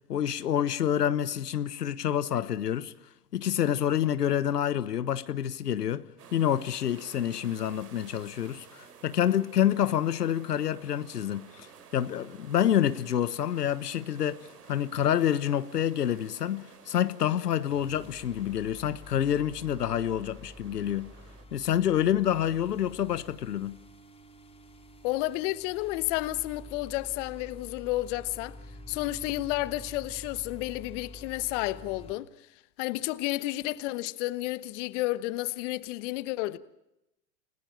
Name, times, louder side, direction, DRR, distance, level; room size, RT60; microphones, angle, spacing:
voice 1, 0.1-2.9 3.3-6.1 6.3-11.7 11.9-21.1 21.5-23.8, left 10 dB, 85° left, 1.2 m, -28 dB
sound 1, 6.2-21.4, right 7 dB, 80° right, 4.3 m, -53 dB
sound 2, 17.7-32.1, left 1 dB, 10° left, 4.8 m, -48 dB
voice 2, 25.0-28.6 28.9-32.3 32.8-36.6, left 18 dB, 50° left, 1.3 m, -31 dB
29.5 x 17.0 x 8.8 m
hypercardioid pair, 115°, 47 cm